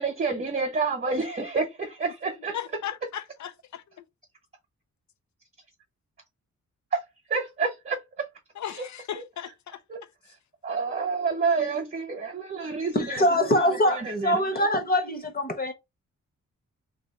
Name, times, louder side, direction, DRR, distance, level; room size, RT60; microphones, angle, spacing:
voice 1, 0.0-2.6 6.9-7.0 7.3-8.3 9.2-9.3 9.9-10.0 10.6-13.5 13.9-14.7, right 4 dB, 35° right, 1.0 m, -29 dB
voice 2, 2.5-4.0 8.6-9.8, left 10 dB, 75° left, 0.6 m, -37 dB
voice 3, 12.9-15.7, left 1 dB, 30° left, 1.0 m, -23 dB
2.9 x 2.8 x 4.1 m
wide cardioid pair, 130°, 29 cm